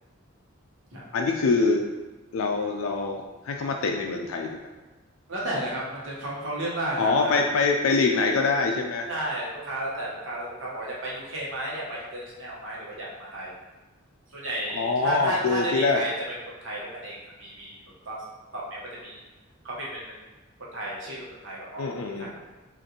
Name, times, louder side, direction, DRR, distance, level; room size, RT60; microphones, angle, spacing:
voice 1, 1.1-1.8 2.3-4.6 7.0-9.1 14.7-16.0 21.8-22.3, left 4 dB, 85° left, 2 dB, 0.4 m, -24 dB
voice 2, 5.3-7.3 9.1-13.5 14.3-16.1 16.6-17.7 18.0-18.2 18.5-19.2 19.6-20.2 20.7-22.3, right 1 dB, 65° right, -5 dB, 1.1 m, -33 dB
5.2 x 2.5 x 2.9 m, 1.2 s
head